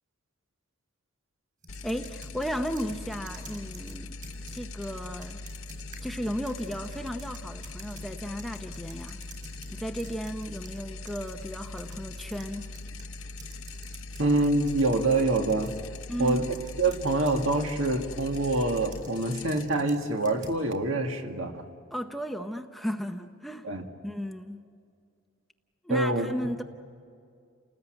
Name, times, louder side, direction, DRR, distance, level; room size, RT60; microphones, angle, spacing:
sound 1, 1.6-10.8 11.1-17.7 18.3-20.6, right 3 dB, 40° right, 5.1 m, -50 dB
sound 2, 1.7-21.0, left 3 dB, 70° left, 0.9 m, -41 dB
voice 1, 1.8-4.2 4.5-5.4 6.0-9.2 9.7-12.7 16.1-16.5 21.9-23.7 24.0-24.6 25.8-26.6, equal, ahead, 5 dB, 0.7 m, -34 dB
voice 2, 14.2-15.7 16.2-21.7 23.6-23.8 25.9-26.3, right 2 dB, 65° right, 4 dB, 2.0 m, -26 dB
29.5 x 19.5 x 9.1 m, 2.3 s
head